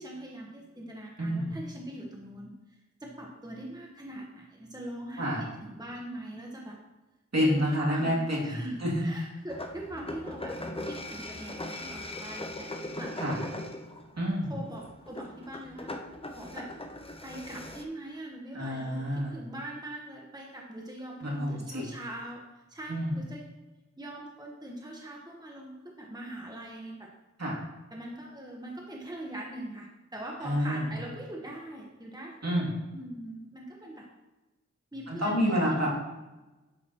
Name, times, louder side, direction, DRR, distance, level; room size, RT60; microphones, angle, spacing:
voice 1, 0.0-6.8 7.4-13.2 14.5-15.9 16.3-16.7 17.2-22.4 22.7-23.4 24.0-27.1 27.9-32.6 32.9-34.1 34.9-35.8, right 1 dB, 15° right, -1 dB, 1.1 m, -42 dB
voice 2, 1.2-1.5 5.2-5.5 7.3-9.0 13.2-13.4 14.2-14.5 18.5-19.4 21.2-21.9 22.9-23.1 27.4-27.6 30.4-30.8 32.4-32.7 35.1-35.9, equal, 60° right, -5 dB, 2.5 m, -28 dB
sound 1, 9.5-17.8, left 1 dB, 20° left, 0.7 m, -40 dB
10.5 x 6.8 x 2.9 m, 1.1 s
wide cardioid pair, 60°, 30 cm